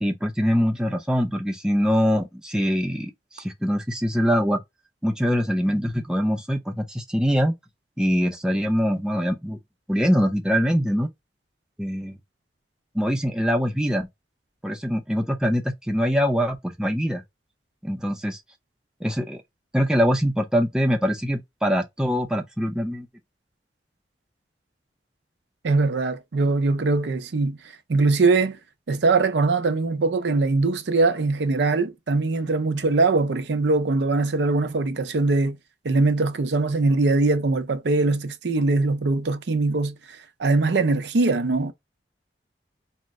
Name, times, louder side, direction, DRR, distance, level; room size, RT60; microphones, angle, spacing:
voice 1, 0.0-4.6 5.0-7.5 8.0-9.6 9.9-11.1 11.8-12.2 12.9-14.1 14.6-17.2 17.8-18.4 19.0-19.4 19.7-23.1, equal, 5° right, 0.5 m, -23 dB
voice 2, 25.6-27.6 27.9-28.6 28.9-35.6 35.8-41.7, right 3 dB, 80° right, 0.5 m, -22 dB
4.3 x 2.1 x 3.6 m
head